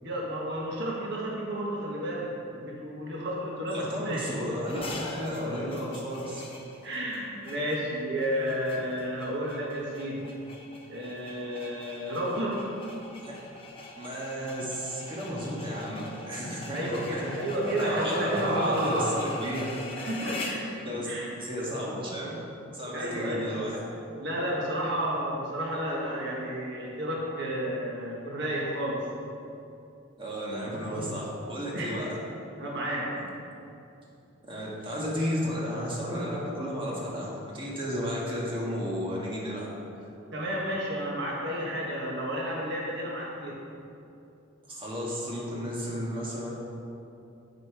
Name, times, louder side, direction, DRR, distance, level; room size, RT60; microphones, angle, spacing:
voice 1, 0.0-4.4 6.8-10.3 10.9-12.8 16.7-19.1 20.0-20.7 21.0-21.3 22.9-23.5 24.2-29.1 31.7-32.1 32.6-33.1 40.3-43.6, equal, 60° right, -3 dB, 1.3 m, -31 dB
voice 2, 3.7-6.4 13.2-13.3 14.0-17.3 17.7-19.6 20.8-21.1 21.4-22.3 22.7-23.8 30.2-32.1 34.5-39.7 44.7-46.5, equal, 25° right, -5 dB, 1.6 m, -32 dB
sound 1, 4.7-20.7, left 3 dB, 25° left, 0.9 m, -43 dB
8.4 x 6.7 x 4.7 m, 2.7 s
head